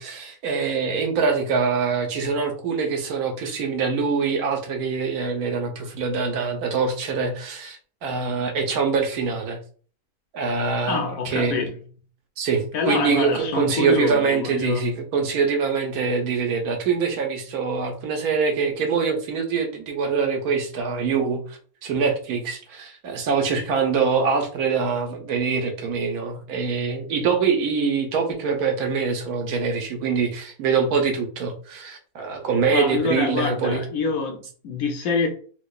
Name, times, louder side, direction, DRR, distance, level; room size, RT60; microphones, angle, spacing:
voice 1, 0.0-9.6 10.3-11.6 12.4-33.8, right 5 dB, 90° right, 1.3 m, -24 dB
voice 2, 10.9-11.8 12.7-15.0 32.7-35.3, left 4 dB, 75° left, 1.1 m, -26 dB
4.7 x 2.3 x 2.3 m
omnidirectional pair, 1.5 m